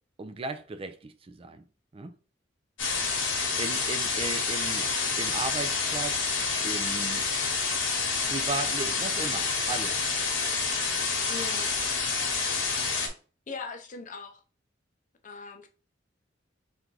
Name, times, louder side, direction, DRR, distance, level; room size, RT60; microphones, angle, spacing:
voice 1, 0.2-1.6 1.9-2.1 3.6-4.9 5.2-6.3 6.6-7.2 8.3-10.1, right 3 dB, 30° right, 0.4 m, -36 dB
sound 1, 2.8-13.1, left 4 dB, 80° left, 1.1 m, -28 dB
voice 2, 11.3-11.7 13.5-14.4 15.2-15.7, left 4 dB, 45° left, 0.7 m, -39 dB
3.6 x 2.6 x 4.6 m
head